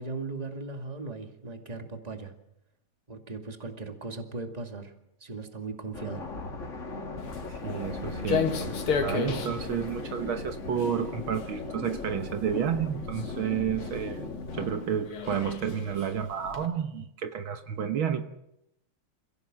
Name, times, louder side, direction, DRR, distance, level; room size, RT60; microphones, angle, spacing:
voice 1, 0.0-2.3 3.1-4.9 5.2-6.2, right 3 dB, 20° right, 5 dB, 2.2 m, -38 dB
sound 1, 5.9-14.7, left 3 dB, 35° left, 2.3 m, -38 dB
Walk footsteps, 7.2-16.7, left 6 dB, 75° left, 2.6 m, -35 dB
voice 2, 7.5-14.3 14.5-18.2, right 8 dB, 70° right, 7 dB, 1.9 m, -31 dB
28.5 x 16.0 x 7.5 m, 0.85 s
omnidirectional pair, 2.4 m